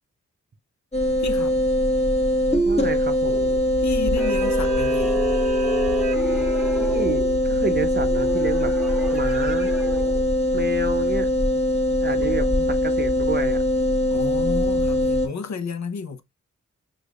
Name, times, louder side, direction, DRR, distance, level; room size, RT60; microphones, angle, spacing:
sound 1, 0.9-15.3, left 1 dB, 20° left, 1.3 m, -22 dB
voice 1, 1.2-1.6 3.8-5.3 12.3-12.7 14.1-16.2, left 5 dB, 65° left, 0.7 m, -32 dB
voice 2, 2.6-3.5 6.3-6.4 6.8-8.7 9.1-9.7 10.5-11.3 12.0-13.6, right 4 dB, 35° right, 0.7 m, -29 dB
sound 2, 3.3-10.3, equal, 5° right, 1.0 m, -31 dB
6.4 x 2.5 x 2.3 m
wide cardioid pair, 75°, 31 cm